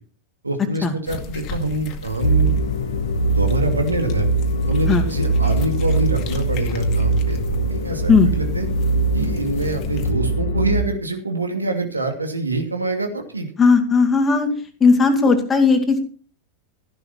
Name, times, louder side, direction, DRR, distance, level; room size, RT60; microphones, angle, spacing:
voice 1, 0.4-2.5 3.4-4.3 4.7-8.7 9.1-13.5, right 2 dB, 80° right, 5 dB, 2.6 m, -25 dB
sound 1, 1.1-10.1, left 4 dB, 40° left, 2.1 m, -34 dB
sound 2, 2.2-10.8, right 2 dB, 65° left, 1.3 m, -21 dB
voice 2, 13.6-14.5 14.8-16.0, left 4 dB, 20° left, 5 dB, 2.4 m, -16 dB
14.5 x 11.0 x 4.4 m, 0.39 s
figure-of-eight pair, 90°, 0 cm